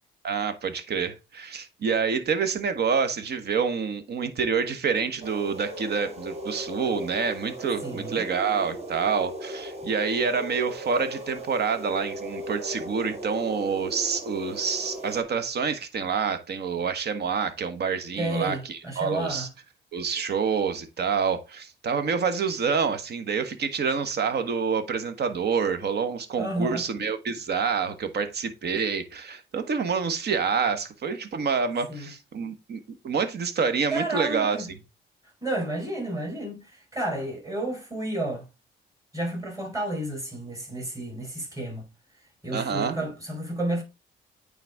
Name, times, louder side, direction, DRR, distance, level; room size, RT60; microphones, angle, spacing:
voice 1, 0.2-19.5 19.9-34.6 42.5-43.0, right 6 dB, 55° right, 1.3 m, -27 dB
sound 1, 5.2-15.2, right 1 dB, 30° right, 1.7 m, -37 dB
voice 2, 7.8-8.2 18.2-19.5 26.4-26.9 31.9-32.1 33.9-34.7 35.4-38.4 39.1-41.9 42.4-43.8, right 1 dB, 15° right, 4.5 m, -31 dB
9.0 x 4.1 x 3.6 m
cardioid pair, 90°, 20 cm